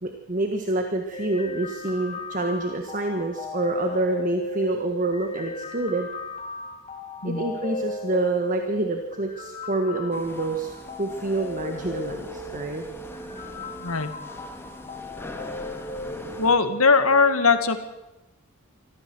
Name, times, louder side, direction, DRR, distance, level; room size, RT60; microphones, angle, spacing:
voice 1, 0.0-6.1 7.2-12.8, right 2 dB, 35° right, 5 dB, 1.5 m, -27 dB
sound 1, 1.1-17.1, left 2 dB, 30° left, 3.0 m, -36 dB
sound 2, 10.1-16.6, left 1 dB, 10° left, 2.0 m, -42 dB
voice 2, 13.8-14.2 16.4-17.8, left 4 dB, 75° left, 10 dB, 1.9 m, -20 dB
24.5 x 15.0 x 7.8 m, 1.0 s
head